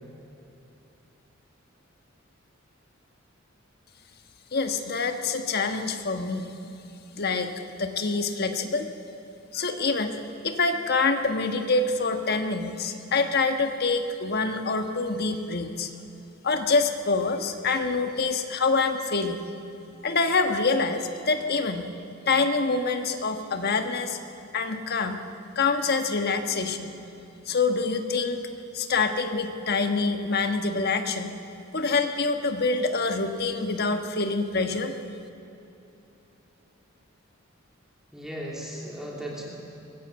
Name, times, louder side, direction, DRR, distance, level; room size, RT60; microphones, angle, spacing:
voice 1, 4.5-6.5 7.2-7.5 7.8-8.9 9.5-10.2 10.4-15.9 16.4-19.4 20.0-21.9 22.3-24.2 24.5-25.2 25.5-26.9 27.5-28.5 28.7-31.3 31.7-35.0, left 4 dB, 50° left, 7 dB, 1.3 m, -26 dB
voice 2, 38.1-39.5, equal, ahead, -3 dB, 2.8 m, -36 dB
22.5 x 15.0 x 8.2 m, 2.9 s
head